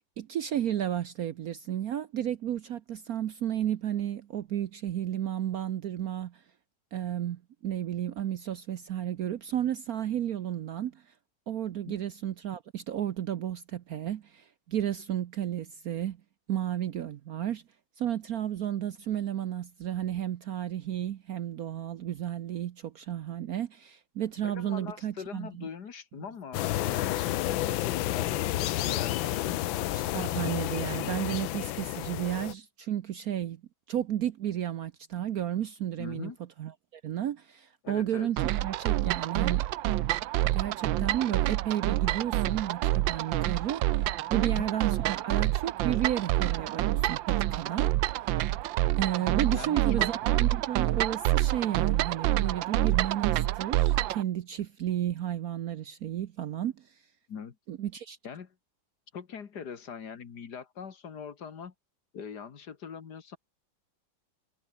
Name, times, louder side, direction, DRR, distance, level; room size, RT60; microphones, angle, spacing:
voice 1, 0.2-6.4 6.9-11.0 11.5-16.2 16.5-17.6 18.0-25.7 29.9-33.6 33.9-36.3 36.6-39.7 40.5-47.9 49.0-56.8 57.7-58.2, right 11 dB, 60° right, 1.0 m, -33 dB
voice 2, 24.4-29.6 36.0-36.4 37.8-38.3 44.3-44.7 49.2-50.1 57.3-57.6 58.2-58.5 59.1-61.7 62.1-63.4, left 7 dB, 60° left, 2.1 m, -42 dB
sound 1, 26.5-32.5, left 15 dB, 85° left, 1.5 m, -30 dB
sound 2, 38.4-54.2, right 15 dB, 80° right, 1.4 m, -27 dB
omnidirectional pair, 2.1 m